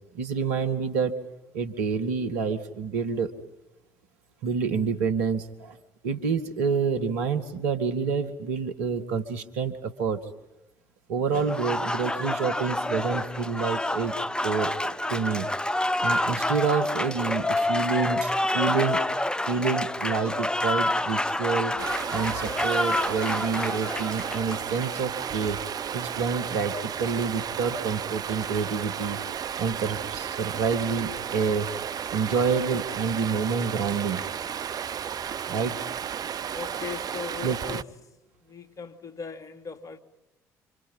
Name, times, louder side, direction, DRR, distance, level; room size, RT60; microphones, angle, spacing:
voice 1, 0.1-1.2 1.5-3.3 4.4-5.8 6.0-10.2 11.1-14.1 14.4-15.5 16.0-19.0 19.5-25.6 25.9-29.2 29.6-31.7 32.1-34.2 35.5-35.8 37.4-37.6, right 5 dB, 80° right, 2.0 m, -28 dB
Applause, 11.3-25.0, left 1 dB, 10° left, 1.2 m, -28 dB
Stream, 21.8-37.8, right 8 dB, 50° right, 0.8 m, -33 dB
voice 2, 36.5-37.9 38.4-40.0, left 6 dB, 40° left, 2.8 m, -39 dB
29.5 x 26.5 x 5.6 m
hypercardioid pair, 50°, 8 cm